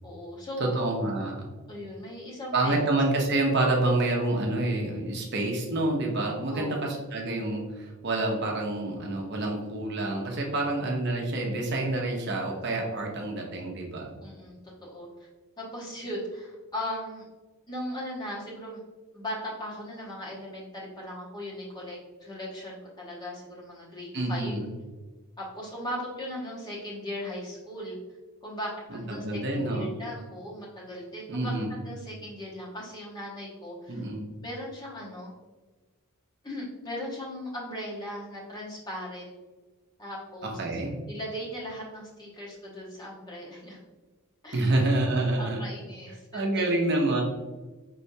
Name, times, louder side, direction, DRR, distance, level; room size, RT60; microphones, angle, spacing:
voice 1, 0.0-0.9 1.7-2.8 6.5-6.8 14.2-15.1 15.6-17.2 17.7-18.8 19.1-24.6 25.4-28.0 28.4-34.0 34.4-35.3 36.4-39.3 40.0-40.6 41.1-43.8 44.4-44.7 45.4-46.9, equal, 20° left, -4 dB, 1.1 m, -38 dB
voice 2, 0.6-1.5 2.5-14.2 24.1-24.7 28.9-29.9 31.3-31.8 33.9-34.3 40.4-41.0 44.5-45.7 46.3-47.2, right 2 dB, 50° right, 0 dB, 0.7 m, -28 dB
5.4 x 3.3 x 2.7 m, 1.3 s
head